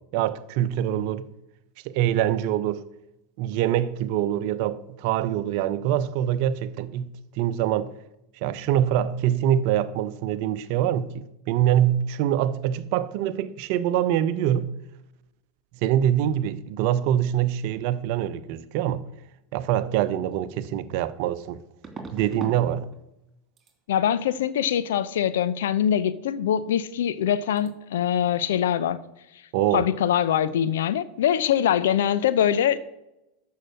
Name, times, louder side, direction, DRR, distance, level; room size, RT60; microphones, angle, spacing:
voice 1, 0.1-1.3 1.8-2.8 3.4-7.1 7.4-7.9 8.4-14.8 15.8-19.0 19.5-21.6 22.1-22.9 29.5-29.8, right 11 dB, 55° right, 0.7 m, -24 dB
sound 1, 20.3-20.4 21.8-22.6 22.9-23.3 23.6-23.8 26.7-26.8 27.1-27.3 27.6-27.7, right 4 dB, 25° right, 3.0 m, -40 dB
voice 2, 23.9-29.0 29.7-32.8, left 9 dB, 65° left, 0.7 m, -23 dB
13.0 x 5.7 x 7.7 m
figure-of-eight pair, 85°, 0 cm